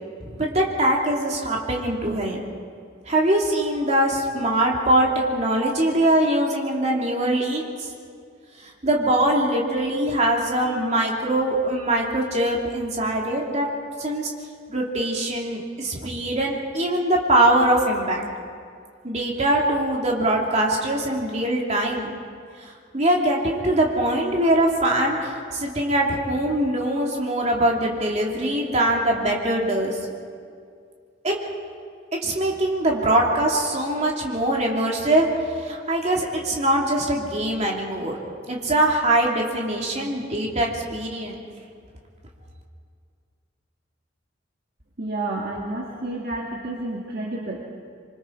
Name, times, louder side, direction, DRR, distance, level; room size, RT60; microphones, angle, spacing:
voice 1, 0.2-2.4 3.1-7.9 8.8-13.7 14.0-14.3 14.7-18.2 19.0-22.2 22.6-30.0 31.2-31.3 32.2-38.2 38.5-41.5, right 1 dB, 35° right, -1 dB, 2.9 m, -22 dB
voice 2, 45.0-47.6, right 2 dB, 55° right, -2 dB, 2.0 m, -30 dB
26.5 x 24.0 x 4.7 m, 2.2 s
head